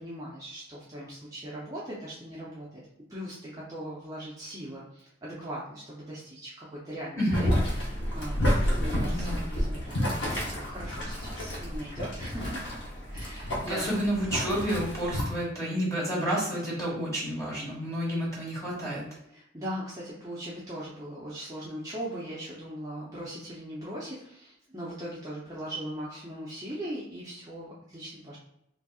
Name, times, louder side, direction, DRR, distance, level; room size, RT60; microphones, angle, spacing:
voice 1, 0.0-2.8 3.1-12.6 13.1-13.8 16.2-16.5 19.3-28.4, equal, 15° right, -7 dB, 0.6 m, -40 dB
voice 2, 7.1-7.5 9.1-9.5 13.7-19.1, equal, 15° left, -5 dB, 1.3 m, -30 dB
Boiling, 7.3-15.2, equal, 60° left, 1.0 m, -30 dB
3.9 x 2.7 x 2.3 m, 0.79 s
head